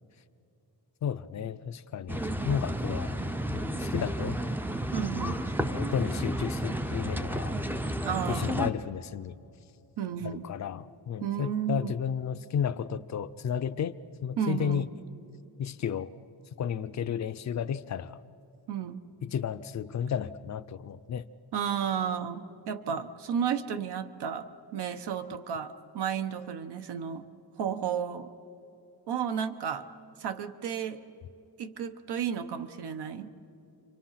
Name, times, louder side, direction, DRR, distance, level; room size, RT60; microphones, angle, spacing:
voice 1, 1.0-3.2 3.5-4.4 5.6-7.6 8.3-9.4 10.2-14.9 15.6-16.1 16.6-18.2 19.2-21.2, left 8 dB, 45° left, 13 dB, 0.5 m, -33 dB
sound 1, 2.1-8.7, right 1 dB, 5° right, 0.5 m, -31 dB
voice 2, 4.9-5.5 8.0-8.6 10.0-10.5 11.2-12.0 14.4-14.8 18.7-19.0 21.5-27.3 27.6-28.3 29.1-29.9 30.2-31.0 31.6-33.3, right 8 dB, 80° right, 9 dB, 1.2 m, -32 dB
30.0 x 24.5 x 5.8 m, 2.6 s
wide cardioid pair, 170°, 39 cm